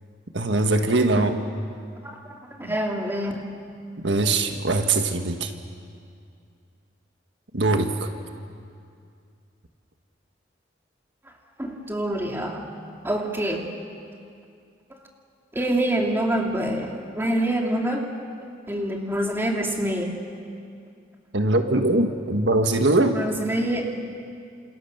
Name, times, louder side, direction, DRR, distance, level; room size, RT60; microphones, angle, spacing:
voice 1, 0.3-1.3 2.6-2.7 4.0-5.5 7.5-8.1 21.3-23.2, right 2 dB, 80° right, 6 dB, 1.6 m, -21 dB
voice 2, 2.0-3.3 11.2-11.3 11.6-12.7 13.0-13.6 15.5-18.1 18.7-20.1 22.9-23.8, right 1 dB, 15° right, 0 dB, 2.8 m, -26 dB
29.0 x 28.0 x 6.8 m, 2.4 s
head